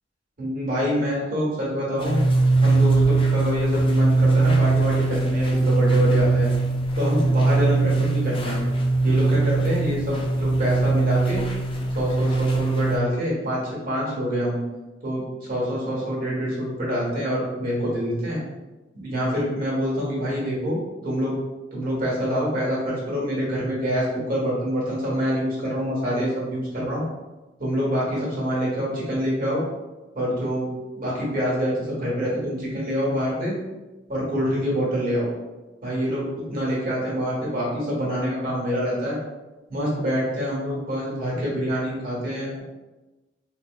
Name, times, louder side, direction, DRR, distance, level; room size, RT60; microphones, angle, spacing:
voice 1, 0.4-2.2 2.6-6.5 6.9-8.6 9.0-11.4 11.9-13.6 13.8-14.6 15.0-15.2 15.5-18.4 18.9-21.3 21.7-27.0 27.6-29.6 30.1-30.7 30.9-33.5 34.1-35.3 35.8-36.2 36.5-39.2 39.7-42.6, equal, 50° right, -5 dB, 1.4 m, -26 dB
sound 1, 2.0-13.0, right 3 dB, 30° left, 0.5 m, -21 dB
4.3 x 2.8 x 2.3 m, 1.1 s
head